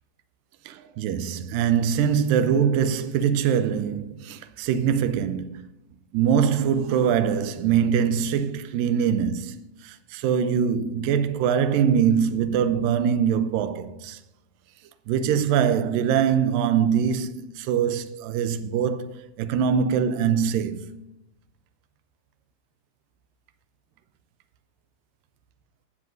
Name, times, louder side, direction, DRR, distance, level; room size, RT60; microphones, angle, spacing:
voice 1, 0.7-5.7 6.1-14.2 15.1-20.9, right 8 dB, 85° right, 2.3 m, -23 dB
17.5 x 12.5 x 2.6 m
omnidirectional pair, 4.1 m